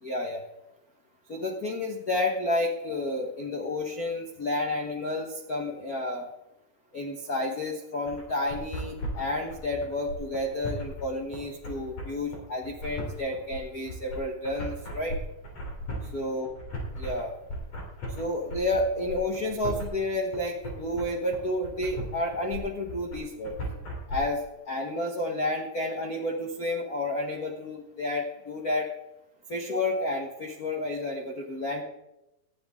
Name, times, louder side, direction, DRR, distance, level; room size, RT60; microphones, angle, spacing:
voice 1, 0.0-0.4 1.3-6.3 6.9-15.2 16.1-16.5 17.0-17.3 18.2-23.6 24.1-28.9 29.5-31.8, left 1 dB, 70° left, 2 dB, 0.8 m, -30 dB
sound 1, 8.1-24.2, equal, 50° left, 4.7 m, -37 dB
19.0 x 13.0 x 3.7 m, 0.93 s
omnidirectional pair, 4.1 m